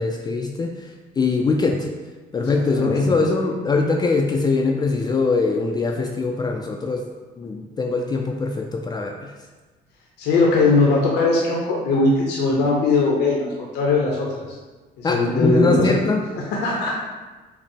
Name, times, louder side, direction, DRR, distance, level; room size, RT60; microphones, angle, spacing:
voice 1, 0.0-1.9 2.3-7.0 7.4-9.3 15.0-16.2, left 3 dB, 25° left, 2 dB, 0.3 m, -22 dB
voice 2, 2.8-3.1 10.2-14.3 15.0-16.0 16.3-16.9, left 3 dB, 80° left, -2 dB, 0.8 m, -20 dB
5.8 x 2.0 x 4.4 m, 1.3 s
cardioid pair, 110°, 17 cm